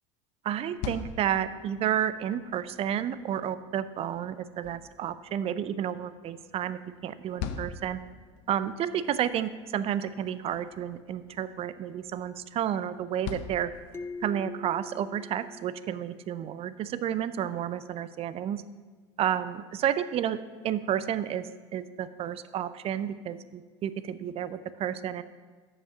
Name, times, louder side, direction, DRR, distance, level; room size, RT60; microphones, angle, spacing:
voice 1, 0.4-8.0 8.5-13.7 14.2-18.6 19.2-25.2, right 10 dB, 40° right, 14 dB, 0.5 m, -31 dB
sound 1, 0.5-14.5, left 6 dB, 60° left, 0.6 m, -45 dB
sound 2, 13.9-16.5, left 2 dB, 15° left, 0.4 m, -43 dB
6.8 x 5.4 x 6.6 m, 1.4 s
hypercardioid pair, 80°, 15 cm